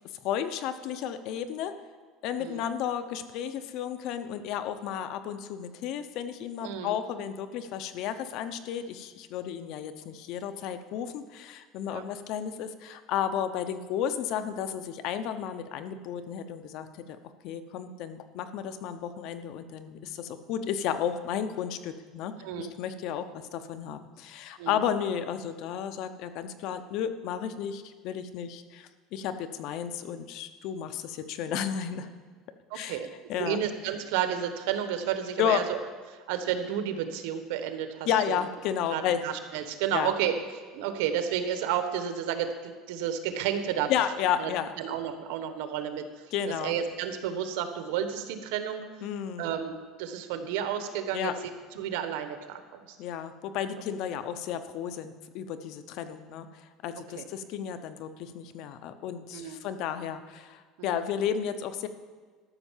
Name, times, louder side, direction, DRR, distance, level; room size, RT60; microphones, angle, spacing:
voice 1, 0.2-1.7 2.2-17.2 17.4-23.2 23.5-32.1 32.7-33.0 33.3-33.6 35.4-35.6 38.1-39.2 39.9-40.1 43.9-44.7 46.3-46.7 49.0-49.5 51.1-51.3 53.0-61.9, left 9 dB, 60° left, 10 dB, 0.8 m, -32 dB
voice 2, 6.6-7.0 11.9-12.0 22.4-22.7 24.6-24.8 32.7-33.1 33.4-35.8 36.1-38.4 38.9-40.3 40.7-43.9 44.4-44.5 44.8-46.2 46.6-48.8 49.4-51.3 51.7-53.0 57.1-57.3 59.3-59.6 60.8-61.0, right 9 dB, 80° right, 8 dB, 1.2 m, -31 dB
13.0 x 6.4 x 7.3 m, 1.5 s
cardioid pair, 145°, 0 cm